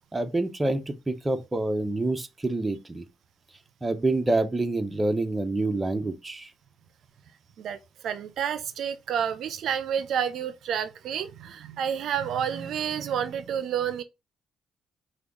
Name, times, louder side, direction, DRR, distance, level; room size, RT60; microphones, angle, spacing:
voice 1, 0.1-3.0 3.8-6.5, right 2 dB, 20° right, 0.6 m, -27 dB
voice 2, 8.0-14.0, right 8 dB, 70° right, 0.4 m, -29 dB
4.8 x 2.3 x 3.5 m
cardioid pair, 90°, 0 cm